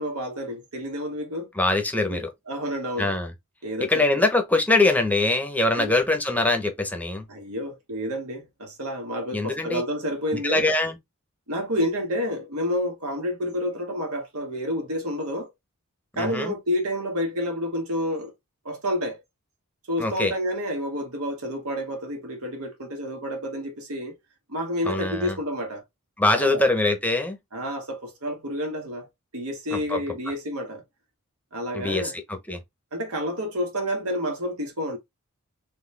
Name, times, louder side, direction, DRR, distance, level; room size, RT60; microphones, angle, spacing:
voice 1, 0.0-1.5 2.1-2.2 2.5-3.2 3.6-4.0 5.8-5.9 7.3-10.6 11.5-15.5 16.2-18.3 18.7-19.2 19.9-24.2 24.5-25.8 26.4-26.6 27.5-29.1 29.3-30.8 31.5-32.1 32.9-35.0, equal, 85° right, 1.7 m, -29 dB
voice 2, 1.6-2.3 3.0-3.3 3.9-7.3 9.3-9.8 10.3-11.0 16.2-16.5 20.0-20.3 24.9-25.3 26.2-27.4 29.7-30.0 31.7-32.6, left 2 dB, 5° left, 0.8 m, -23 dB
4.1 x 3.3 x 3.3 m
head